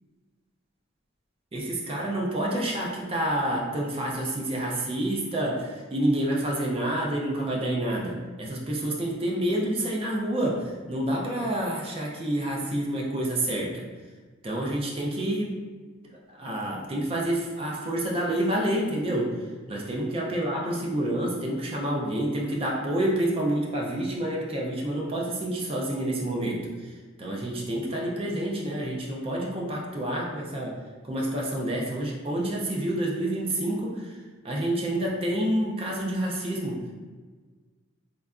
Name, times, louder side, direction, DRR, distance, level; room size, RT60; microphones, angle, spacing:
voice 1, 1.5-13.9 14.4-15.6 16.3-30.8 31.0-34.2 34.4-36.9, right 1 dB, 25° right, -3 dB, 0.4 m, -28 dB
3.7 x 2.2 x 2.4 m, 1.4 s
head